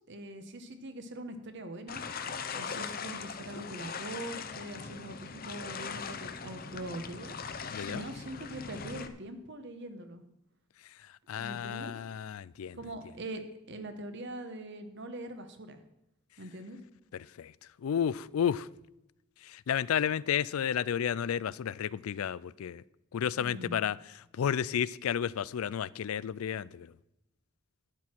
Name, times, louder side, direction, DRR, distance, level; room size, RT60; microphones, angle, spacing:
voice 1, 0.0-2.1 2.5-10.2 11.4-11.9 12.7-13.4 13.7-15.8 16.4-16.8 23.3-23.7, right 1 dB, 55° right, 1.2 m, -42 dB
sound 1, 1.9-9.1, left 6 dB, 45° left, 0.7 m, -40 dB
voice 2, 7.7-8.0 11.3-12.8 17.1-17.5 17.8-18.7 19.4-22.8 23.1-24.0 24.3-26.9, left 8 dB, 85° left, 0.4 m, -32 dB
12.0 x 9.6 x 4.5 m
head